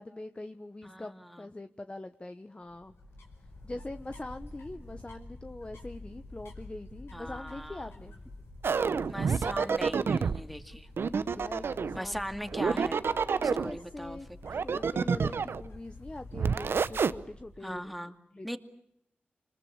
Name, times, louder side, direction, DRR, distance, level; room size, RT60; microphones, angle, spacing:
voice 1, 0.0-1.1 1.4-2.9 3.6-8.1 11.2-12.2 13.3-17.9 18.3-18.6, left 2 dB, 25° left, 9 dB, 1.2 m, -43 dB
voice 2, 0.8-1.4 7.1-7.9 9.1-10.9 11.9-13.0 13.4-14.4 17.6-18.1 18.4-18.6, equal, ahead, 8 dB, 2.4 m, -39 dB
sound 1, 2.6-17.9, left 2 dB, 85° left, 5.1 m, -48 dB
sound 2, 8.6-10.4 11.0-12.0 12.5-13.7 14.4-15.7 16.3-17.1, right 5 dB, 75° right, 0.9 m, -28 dB
25.5 x 21.0 x 8.8 m, 0.77 s
cardioid pair, 45°, 4 cm